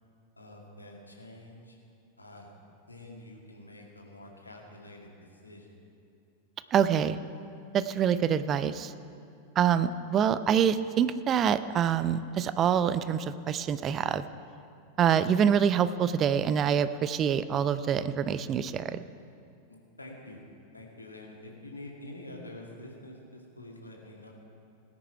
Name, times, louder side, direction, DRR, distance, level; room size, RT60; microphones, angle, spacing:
voice 1, 0.4-1.8 2.2-2.5 2.9-5.8 15.1-15.2 19.7-20.4 20.7-24.3, left 1 dB, 80° left, 0 dB, 2.1 m, -47 dB
voice 2, 6.7-7.2 7.7-8.9 9.6-14.2 15.0-19.0, right 8 dB, 30° right, 14 dB, 0.5 m, -26 dB
18.5 x 9.8 x 4.6 m, 2.5 s
figure-of-eight pair, 90°, 0 cm